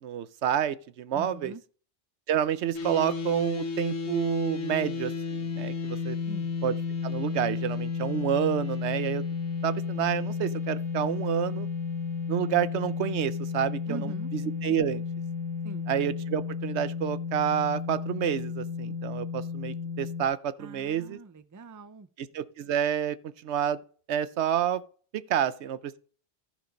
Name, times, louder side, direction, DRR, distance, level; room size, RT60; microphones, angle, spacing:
voice 1, 0.0-1.5 2.3-6.2 6.6-6.7 7.0-9.2 9.6-11.7 12.3-14.0 14.6-15.0 15.9-21.2 22.2-23.2 23.4-23.8 24.1-24.8 25.1-26.0, right 10 dB, 80° right, 0.9 m, -29 dB
voice 2, 1.1-1.6 6.3-6.5 13.9-14.3 15.6-15.9 20.6-22.1, right 3 dB, 25° right, 0.4 m, -42 dB
sound 1, 2.7-20.2, left 5 dB, 90° left, 1.3 m, -33 dB
14.5 x 5.1 x 5.2 m
omnidirectional pair, 1.1 m